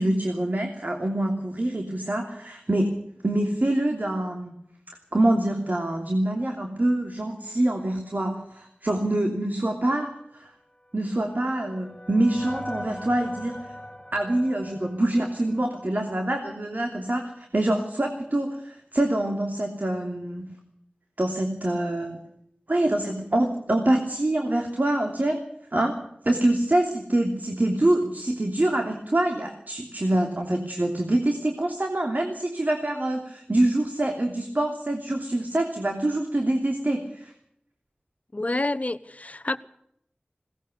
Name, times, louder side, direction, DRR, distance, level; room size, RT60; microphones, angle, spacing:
voice 1, 0.0-4.5 5.1-10.5 10.9-13.6 14.1-20.5 21.2-22.2 22.7-25.4 25.7-37.3, right 1 dB, 55° right, 3 dB, 3.0 m, -25 dB
sound 1, 10.7-16.1, equal, 20° left, 3.5 m, -41 dB
voice 2, 38.3-39.6, left 2 dB, 45° left, 13 dB, 1.1 m, -28 dB
21.5 x 18.5 x 6.8 m, 0.73 s
wide cardioid pair, 45°, 3 cm